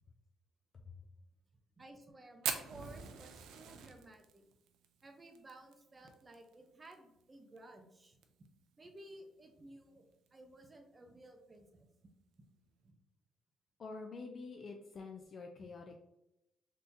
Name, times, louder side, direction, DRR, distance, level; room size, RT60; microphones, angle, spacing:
voice 1, 1.8-4.5 5.0-8.2 8.8-11.9 12.8-12.9 15.6-15.7, right 1 dB, 25° right, 4 dB, 0.6 m, -56 dB
Fire, 2.4-6.9 7.2-7.3 7.6-7.7 8.0-8.5 9.0-9.1 10.1-10.3, right 8 dB, 90° right, 0.4 m, -42 dB
voice 2, 13.8-16.0, left 4 dB, 50° left, 2 dB, 0.4 m, -47 dB
3.5 x 2.8 x 2.6 m, 0.87 s
cardioid pair, 90°, 0 cm